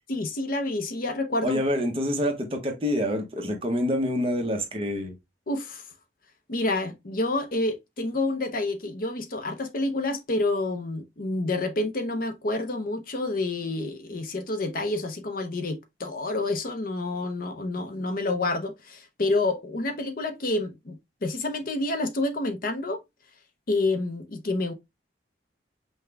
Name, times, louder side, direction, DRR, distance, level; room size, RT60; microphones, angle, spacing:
voice 1, 0.1-1.6 5.5-5.8 6.5-23.0 23.7-24.7, left 2 dB, 50° left, 0.6 m, -28 dB
voice 2, 1.4-5.1, equal, 30° right, 0.9 m, -27 dB
5.7 x 2.2 x 3.3 m
head